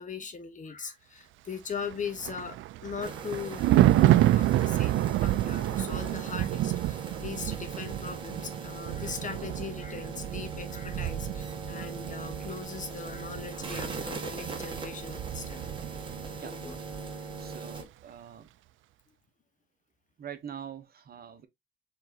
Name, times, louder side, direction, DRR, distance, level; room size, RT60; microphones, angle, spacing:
voice 1, 0.0-15.6 16.3-16.8, left 6 dB, 40° left, 1.1 m, -40 dB
Thunder, 1.8-16.4 16.7-17.0, right 14 dB, 80° right, 0.4 m, -28 dB
sound 1, 3.0-17.8, right 4 dB, 25° right, 1.7 m, -40 dB
voice 2, 17.4-18.5 20.2-21.5, right 8 dB, 50° right, 1.0 m, -44 dB
4.5 x 3.8 x 2.8 m
cardioid pair, 90°, 20 cm